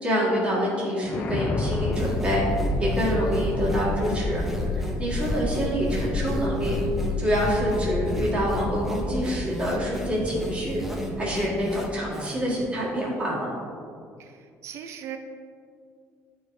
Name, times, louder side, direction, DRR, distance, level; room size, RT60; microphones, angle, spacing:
voice 1, 0.0-2.5 2.8-4.4 5.0-6.8 7.2-10.8 11.2-13.5, equal, 20° right, -6 dB, 1.7 m, -26 dB
sound 1, 1.0-12.1, left 2 dB, 35° left, 0.5 m, -30 dB
sound 2, 1.9-12.6, equal, 5° right, 0.7 m, -35 dB
voice 2, 14.2-15.2, right 9 dB, 50° right, 6 dB, 0.4 m, -40 dB
11.0 x 4.7 x 2.6 m, 2.3 s
cardioid pair, 145°, 6 cm